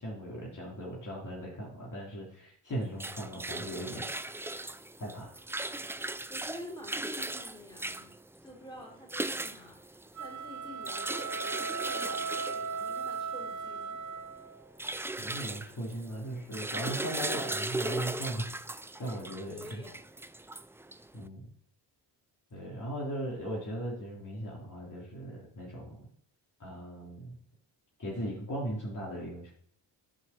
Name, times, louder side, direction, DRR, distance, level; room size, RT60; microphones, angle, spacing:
voice 1, 0.0-4.3 5.0-5.3 15.2-18.6 19.0-19.8 21.1-21.5 22.5-26.0 26.6-27.4 28.0-29.5, right 1 dB, 45° left, -4 dB, 3.5 m, -38 dB
sound 1, 2.7-21.2, right 2 dB, 5° right, 0.3 m, -38 dB
voice 2, 6.3-8.1 8.4-14.0 19.0-19.2 19.5-20.0 20.9-21.1, left 1 dB, 10° left, -2 dB, 4.7 m, -49 dB
sound 2, 10.1-14.6, right 5 dB, 40° right, 1.0 m, -37 dB
8.9 x 6.2 x 7.2 m, 0.65 s
cardioid pair, 100°, 44 cm